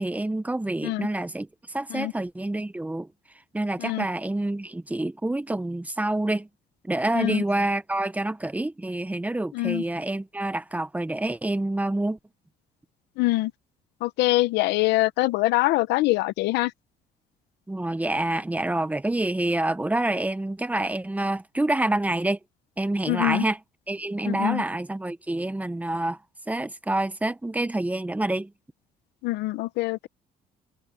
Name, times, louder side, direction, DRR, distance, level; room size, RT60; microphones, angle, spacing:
voice 1, 0.0-1.5 1.7-3.1 3.5-6.5 6.8-12.2 17.7-22.4 22.8-23.6 23.9-26.2 26.5-28.5, right 1 dB, 10° right, 1.0 m, -27 dB
voice 2, 9.5-9.8 13.2-13.5 14.0-16.7 23.1-23.4 24.3-24.6 29.2-30.1, left 19 dB, 90° left, 0.8 m, -24 dB
cardioid pair, 110°, 17 cm